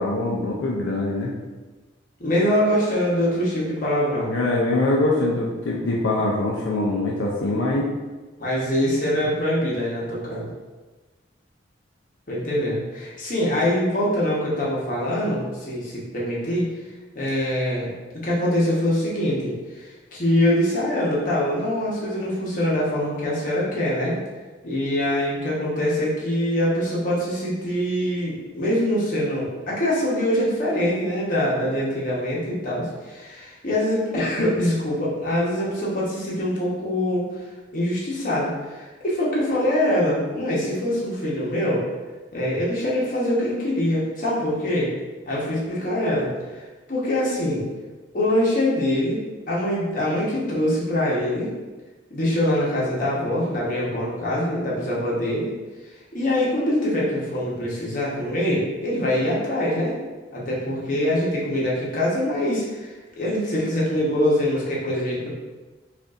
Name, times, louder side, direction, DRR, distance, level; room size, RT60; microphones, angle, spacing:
voice 1, 0.0-1.3 4.3-7.9, left 2 dB, 80° left, -3 dB, 0.5 m, -23 dB
voice 2, 2.2-4.3 8.4-10.5 12.3-16.7 17.1-24.2 24.6-37.3 37.7-41.8 42.3-44.9 45.2-47.7 48.1-51.5 52.1-55.5 56.1-59.9 60.3-65.3, left 1 dB, 45° left, -6 dB, 1.0 m, -24 dB
5.1 x 2.6 x 2.4 m, 1.2 s
head